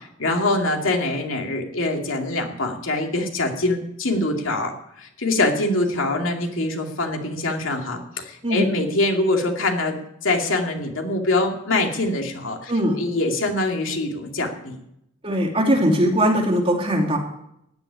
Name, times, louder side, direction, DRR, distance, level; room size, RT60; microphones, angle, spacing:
voice 1, 0.0-10.0 10.2-14.8, left 2 dB, 75° left, 2 dB, 2.6 m, -24 dB
voice 2, 15.2-17.2, equal, 30° right, 1 dB, 2.9 m, -20 dB
15.0 x 7.8 x 9.9 m, 0.79 s
head